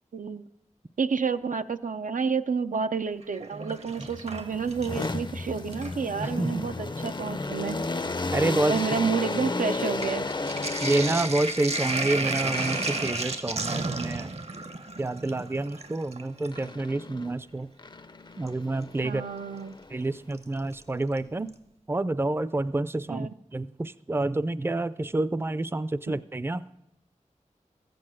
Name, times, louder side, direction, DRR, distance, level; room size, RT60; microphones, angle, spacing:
voice 1, 0.1-0.4 1.0-7.8 8.7-10.2 19.0-19.8 23.1-23.3, right 5 dB, 85° right, 9 dB, 0.5 m, -29 dB
Sink (filling or washing), 3.2-5.2 5.6-6.4 7.2-7.3 7.6-16.7 18.5-18.6 20.4-20.8 21.2-21.3 21.5-21.6, right 2 dB, 50° right, 0.8 m, -33 dB
sound 1, 4.0-11.6 12.5-13.3 16.5-17.3 17.8-20.2, left 3 dB, 35° left, 0.5 m, -33 dB
voice 2, 6.2-6.6 8.3-8.8 10.8-14.4 15.0-17.7 18.4-19.2 19.9-21.5 21.9-26.6, right 2 dB, 15° right, 16 dB, 0.4 m, -28 dB
14.0 x 7.8 x 7.6 m, 0.83 s
wide cardioid pair, 60°, 13 cm